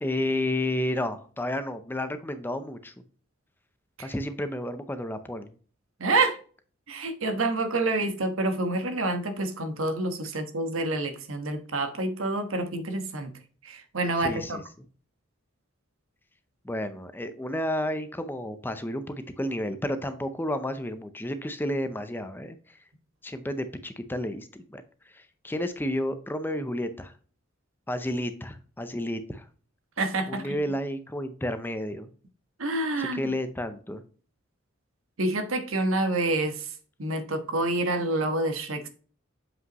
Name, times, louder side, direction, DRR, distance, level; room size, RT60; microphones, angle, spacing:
voice 1, 0.0-2.9 4.0-5.5 14.2-14.6 16.6-22.8 23.2-27.1 27.9-29.5 30.3-32.1 33.0-34.0, left 1 dB, 10° left, 0.5 m, -31 dB
voice 2, 6.0-6.4 6.9-13.3 13.6-14.6 30.0-30.5 32.6-33.2 35.2-36.7 37.0-38.9, right 2 dB, 75° right, 1.2 m, -28 dB
7.5 x 5.5 x 3.0 m
head